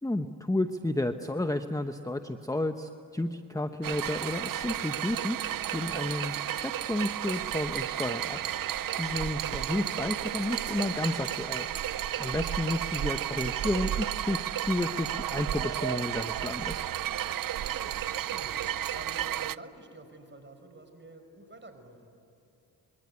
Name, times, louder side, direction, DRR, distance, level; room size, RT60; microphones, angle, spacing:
voice 1, 0.0-5.4 5.7-8.4 8.9-11.7 12.2-16.8, left 1 dB, 10° left, 8 dB, 1.0 m, -32 dB
sound 1, 3.8-19.6, right 11 dB, 50° right, 0.5 m, -33 dB
voice 2, 17.6-18.5 18.9-22.1, right 2 dB, 25° right, 7 dB, 5.0 m, -48 dB
25.5 x 22.5 x 9.8 m, 2.7 s
cardioid pair, 60°, 44 cm